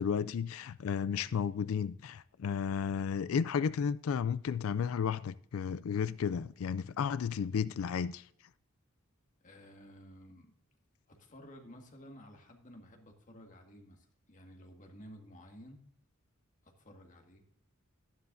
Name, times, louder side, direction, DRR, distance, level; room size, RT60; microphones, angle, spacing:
voice 1, 0.0-8.2, left 7 dB, 75° left, 0.4 m, -33 dB
voice 2, 9.4-10.5 11.1-15.8 16.6-17.4, equal, 40° left, 1.7 m, -54 dB
13.0 x 11.0 x 2.6 m
head